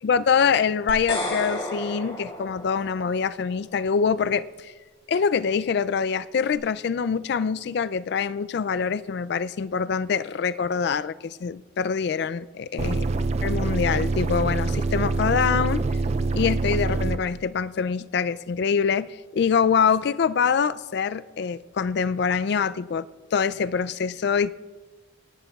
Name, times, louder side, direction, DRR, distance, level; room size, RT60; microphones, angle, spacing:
voice 1, 0.0-4.7 5.1-13.1 13.4-15.8 16.3-24.5, left 6 dB, 55° left, 0.3 m, -24 dB
sound 1, 0.9-3.2, left 1 dB, 30° left, 3.3 m, -32 dB
sound 2, 12.8-17.2, right 3 dB, 35° right, 0.3 m, -25 dB
28.0 x 11.0 x 2.4 m
head